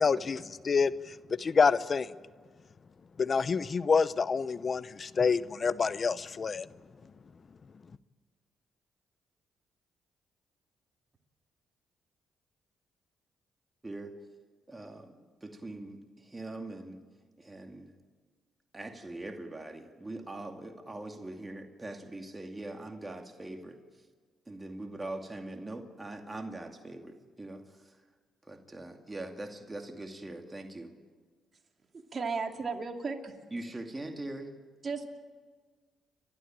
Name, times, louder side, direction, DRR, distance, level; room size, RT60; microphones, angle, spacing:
voice 1, 0.0-2.1 3.2-6.7, left 5 dB, 45° left, 16 dB, 0.8 m, -27 dB
voice 2, 14.7-17.0 17.4-17.9 18.7-24.1 24.5-28.0 28.4-30.9 33.5-34.5, right 2 dB, 20° right, 4 dB, 2.3 m, -42 dB
voice 3, 31.9-33.4 34.8-35.1, right 4 dB, 45° right, 3 dB, 2.6 m, -35 dB
29.5 x 12.0 x 8.9 m, 1.5 s
supercardioid pair, 65°, 0 cm